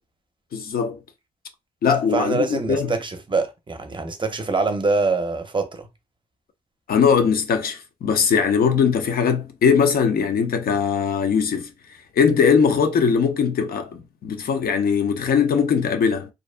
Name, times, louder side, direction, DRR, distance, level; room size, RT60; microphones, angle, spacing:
voice 1, 0.5-1.0 1.8-2.9 6.9-11.7 12.2-16.3, left 6 dB, 90° left, 0.5 m, -20 dB
voice 2, 2.1-5.9, right 3 dB, 35° right, 0.5 m, -24 dB
2.5 x 2.1 x 2.4 m
cardioid pair, 80°, 15 cm